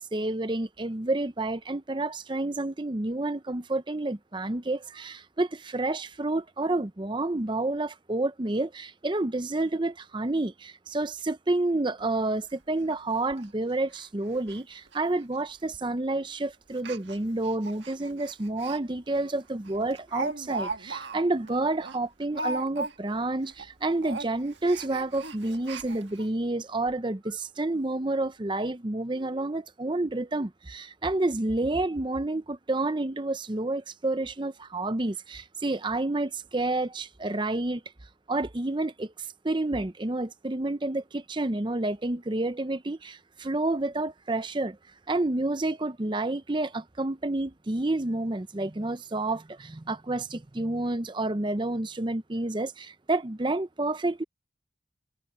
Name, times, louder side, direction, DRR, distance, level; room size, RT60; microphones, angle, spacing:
voice 1, 0.1-37.8 38.3-44.8 45.1-54.2, right 2 dB, 25° right, 0.6 m, -29 dB
Speech, 12.0-12.1 12.4-12.5 12.9-13.0 13.3-13.5 13.9-14.1 14.3-14.6 14.9-15.0 15.7-16.0 16.7-18.8 19.2-19.3 19.6-23.2 23.5-23.7 24.0-26.3 26.9-27.0 27.2-27.3, right 3 dB, 75° right, 1.6 m, -38 dB
head